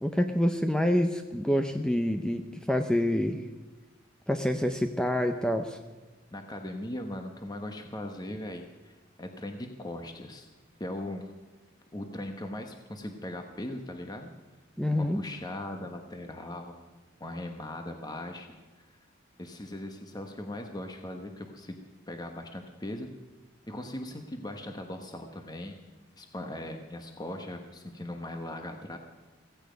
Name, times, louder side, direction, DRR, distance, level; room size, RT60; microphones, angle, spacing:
voice 1, 0.0-3.4 4.3-5.8 14.8-15.2, left 1 dB, 5° left, 6 dB, 0.6 m, -27 dB
voice 2, 6.3-10.5 10.8-11.3 11.9-14.3 14.9-16.8 17.2-18.5 19.4-21.8 22.1-23.1 23.7-25.8 26.1-29.0, left 1 dB, 20° left, 4 dB, 1.2 m, -39 dB
16.0 x 16.0 x 5.2 m, 1.3 s
head